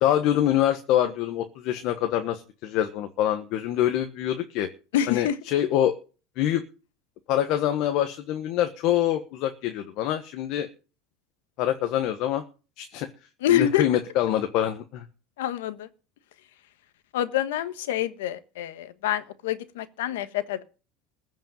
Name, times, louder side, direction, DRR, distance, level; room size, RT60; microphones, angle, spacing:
voice 1, 0.0-4.7 5.1-5.9 6.4-6.6 7.3-10.7 11.6-12.4 12.8-13.1 13.5-15.0, left 11 dB, 55° left, 1.3 m, -25 dB
voice 2, 4.9-5.4 13.4-13.9 15.4-15.9 17.1-20.6, left 11 dB, 85° left, 1.3 m, -26 dB
15.0 x 5.5 x 9.1 m
supercardioid pair, 130°, 0 cm